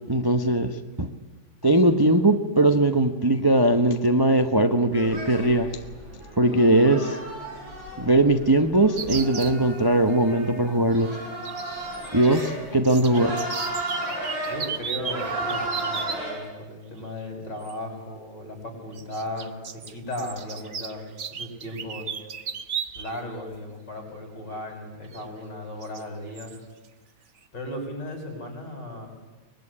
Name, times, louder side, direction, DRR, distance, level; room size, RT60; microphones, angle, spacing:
voice 1, 0.1-0.7 1.0-1.1 1.6-5.7 6.4-7.2 8.0-11.1 12.1-13.3, right 1 dB, 20° right, 7 dB, 0.7 m, -20 dB
sound 1, 4.9-16.3, right 1 dB, 75° right, 7.2 m, -34 dB
sound 2, 9.0-9.6 11.4-12.5 12.8-16.2 17.6-17.7 18.9-23.2 23.5-23.6 25.1-25.2 25.8-26.0 26.4-26.6, right 7 dB, 45° right, 1.2 m, -35 dB
voice 2, 14.5-22.1 23.0-26.6 27.5-29.1, left 1 dB, 60° left, 3 dB, 7.5 m, -36 dB
24.0 x 21.5 x 10.0 m, 1.2 s
omnidirectional pair, 2.2 m